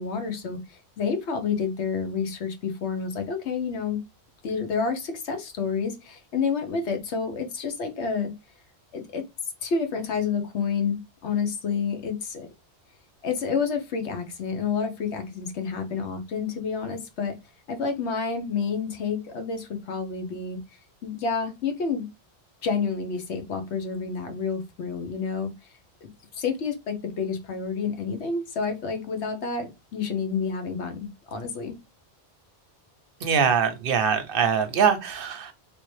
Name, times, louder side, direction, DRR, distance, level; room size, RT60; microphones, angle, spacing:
voice 1, 0.0-4.0 4.4-8.3 8.9-9.3 9.6-12.5 13.2-17.4 17.7-20.6 21.0-22.1 22.6-25.5 26.0-31.8, left 5 dB, 85° left, 1.1 m, -29 dB
voice 2, 33.2-35.5, right 7 dB, 65° right, 0.7 m, -23 dB
3.4 x 2.8 x 3.1 m
omnidirectional pair, 1.1 m